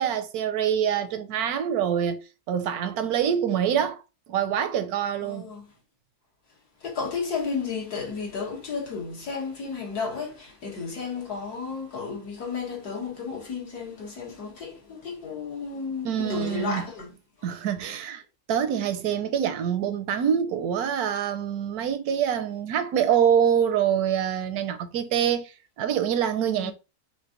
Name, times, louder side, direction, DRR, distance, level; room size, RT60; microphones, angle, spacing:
voice 1, 0.0-4.0 4.3-5.5 16.0-16.8 17.4-18.2 18.5-26.7, right 8 dB, 75° right, 1.1 m, -25 dB
voice 2, 5.2-5.7 6.8-17.1 17.4-17.5 26.5-26.7, left 5 dB, 75° left, 2.0 m, -33 dB
5.8 x 2.7 x 2.9 m
omnidirectional pair, 1.7 m